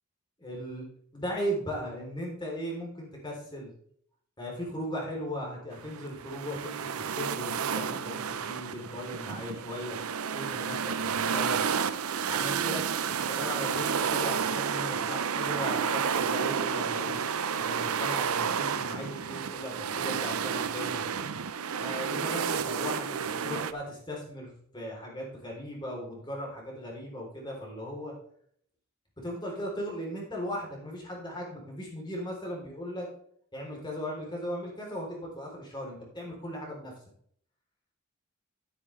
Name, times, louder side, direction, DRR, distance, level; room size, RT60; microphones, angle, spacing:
voice 1, 0.4-0.8 1.1-3.7 4.4-10.0 10.3-11.6 12.3-12.8 13.2-17.2 17.6-21.0 21.8-28.1 29.2-33.1 33.5-36.9, equal, 20° left, -2 dB, 3.5 m, -37 dB
sound 1, 5.7-23.7, right 7 dB, 90° right, 0.6 m, -31 dB
11.5 x 9.4 x 3.3 m, 0.63 s
head